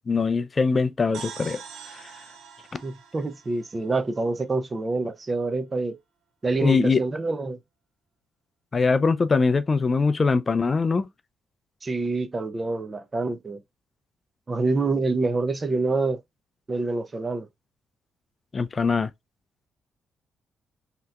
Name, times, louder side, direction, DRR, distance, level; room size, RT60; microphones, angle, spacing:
voice 1, 0.1-2.1 6.6-7.0 8.7-11.1 18.5-19.1, left 4 dB, 30° left, 0.3 m, -22 dB
sound 1, 1.1-4.8, right 7 dB, 75° right, 0.6 m, -44 dB
voice 2, 2.8-6.0 6.4-7.6 11.8-13.6 14.5-16.2 16.7-17.5, right 3 dB, 30° right, 0.5 m, -26 dB
3.3 x 2.8 x 2.3 m
cardioid pair, 90°, 0 cm